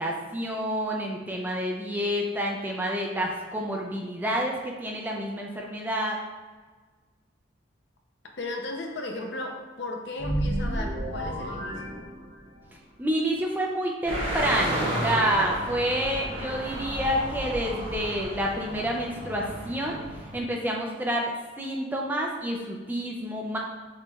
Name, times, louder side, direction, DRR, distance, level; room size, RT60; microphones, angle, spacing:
voice 1, 0.0-6.2 13.0-20.0 20.3-21.3 21.6-23.6, equal, 10° right, -1 dB, 0.4 m, -28 dB
voice 2, 8.4-11.9, left 2 dB, 60° left, 2 dB, 0.6 m, -35 dB
sound 1, 10.2-12.7, right 1 dB, 85° right, 1.0 m, -31 dB
sound 2, 14.0-20.4, right 1 dB, 30° right, 0.9 m, -32 dB
6.7 x 3.2 x 2.3 m, 1.4 s
head